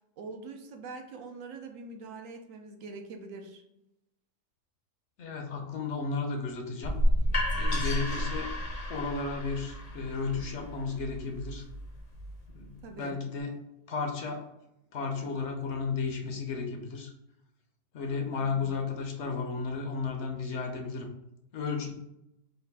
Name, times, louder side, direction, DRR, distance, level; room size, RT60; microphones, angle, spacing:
voice 1, 0.2-3.6 12.8-13.1 18.4-18.7, right 3 dB, 75° right, 5 dB, 1.0 m, -43 dB
voice 2, 5.2-7.0 7.5-8.5 8.9-11.6 12.5-13.5 13.9-14.5 14.9-17.1 17.9-21.1 21.5-21.9, left 4 dB, 65° left, 2 dB, 0.9 m, -33 dB
sound 1, 6.8-12.6, equal, 45° left, 0.5 m, -31 dB
4.0 x 2.4 x 3.4 m, 0.87 s
omnidirectional pair, 1.4 m